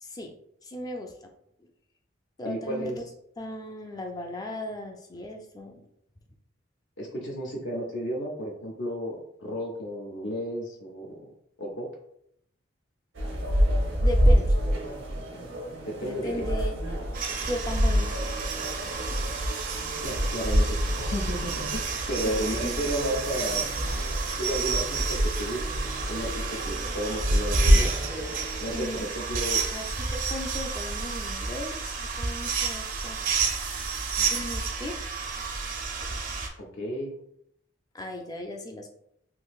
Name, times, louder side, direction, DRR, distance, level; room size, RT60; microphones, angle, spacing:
voice 1, 0.0-0.3 0.6-1.3 1.6-1.7 2.4-3.0 3.4-5.9 14.0-14.6 16.0-16.8 17.4-18.3 22.2-22.8 28.7-29.1 29.5-33.2 34.2-35.0 37.9-38.9, left 1 dB, 20° left, 3 dB, 0.4 m, -37 dB
voice 2, 2.4-3.0 7.0-11.1 11.6-11.9 15.9-16.5 20.0-23.7 24.4-27.9 28.6-28.9 29.1-29.6 36.6-37.2, equal, 65° left, 0 dB, 0.6 m, -33 dB
sound 1, 13.1-28.8, equal, 90° right, 0.9 m, -27 dB
sound 2, 17.1-36.5, right 5 dB, 45° right, 0.5 m, -31 dB
3.8 x 2.6 x 2.3 m, 0.73 s
head